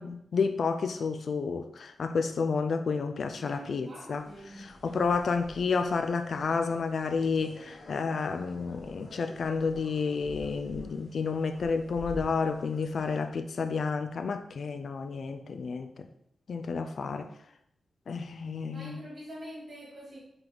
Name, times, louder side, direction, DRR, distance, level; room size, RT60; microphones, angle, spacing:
voice 1, 0.0-4.2 4.6-15.9 16.5-17.3 18.1-18.9, left 5 dB, 55° left, 8 dB, 0.4 m, -30 dB
voice 2, 3.4-4.7 18.7-20.2, equal, 40° right, -4 dB, 2.8 m, -45 dB
sound 1, 4.1-13.2, left 1 dB, 80° left, 1.9 m, -48 dB
5.8 x 4.0 x 5.2 m, 0.73 s
wide cardioid pair, 170°, 0 cm